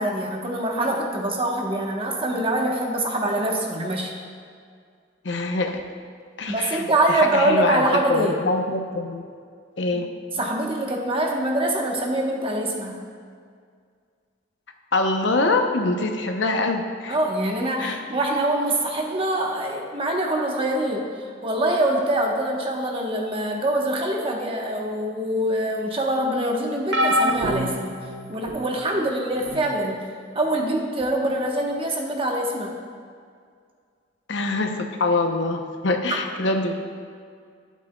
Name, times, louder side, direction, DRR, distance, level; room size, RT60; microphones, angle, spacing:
voice 1, 0.0-4.1 6.5-8.3 10.4-13.0 17.1-21.1 21.4-27.9 28.3-30.0 30.3-32.7 36.1-36.2, right 1 dB, 30° right, 0 dB, 1.1 m, -24 dB
voice 2, 5.2-5.8 6.4-9.2 9.8-10.1 14.9-17.2 17.8-18.0 29.5-29.6 34.3-36.7, left 2 dB, 70° left, 5 dB, 0.8 m, -24 dB
sound 1, 26.9-28.7 29.5-29.7 31.0-31.1, equal, 65° right, 0.7 m, -25 dB
12.0 x 8.3 x 2.3 m, 2.1 s
head